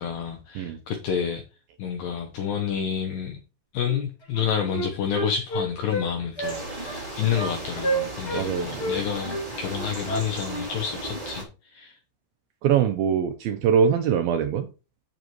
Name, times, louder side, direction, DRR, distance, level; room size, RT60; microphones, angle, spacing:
voice 1, 0.0-1.4 1.8-3.4 3.7-11.9, left 8 dB, 80° left, 1.9 m, -29 dB
Wind instrument woodwind instrument, 3.9-4.0 4.3-6.1 6.4-6.6 6.8-7.0 7.3-7.5 7.8-8.5 8.8-10.7, right 1 dB, 55° left, 0.7 m, -29 dB
sound 1, 6.4-11.4, right 2 dB, 55° right, 0.4 m, -36 dB
voice 2, 8.4-8.7 12.6-14.7, right 8 dB, 80° right, 2.2 m, -22 dB
8.1 x 7.7 x 3.0 m
omnidirectional pair, 5.0 m